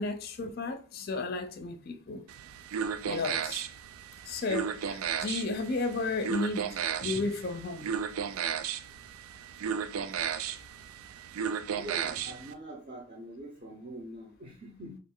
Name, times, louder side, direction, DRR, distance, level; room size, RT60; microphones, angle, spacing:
voice 1, 0.0-2.2 3.1-3.6 4.2-7.9, left 3 dB, 45° left, 0.4 m, -33 dB
sound 1, 2.3-12.5, right 7 dB, 90° right, 0.3 m, -34 dB
voice 2, 10.3-10.8 11.7-15.0, right 1 dB, 35° right, 0.6 m, -44 dB
3.0 x 2.4 x 3.6 m
head